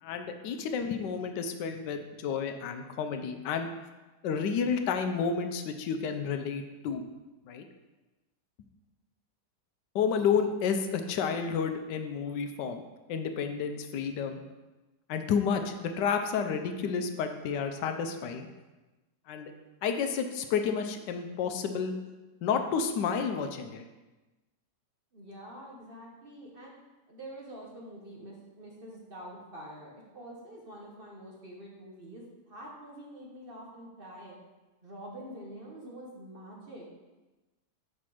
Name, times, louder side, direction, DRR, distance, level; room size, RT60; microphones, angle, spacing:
voice 1, 0.0-3.7 4.2-7.0 7.5-7.6 9.9-12.8 13.1-14.4 15.1-18.5 19.3-19.5 19.8-21.9 22.4-23.9, left 6 dB, 80° left, 6 dB, 1.2 m, -30 dB
voice 2, 25.1-26.7 27.1-34.3 34.8-36.9, right 1 dB, 40° right, -3 dB, 1.0 m, -46 dB
5.8 x 5.1 x 4.8 m, 1.1 s
omnidirectional pair, 1.9 m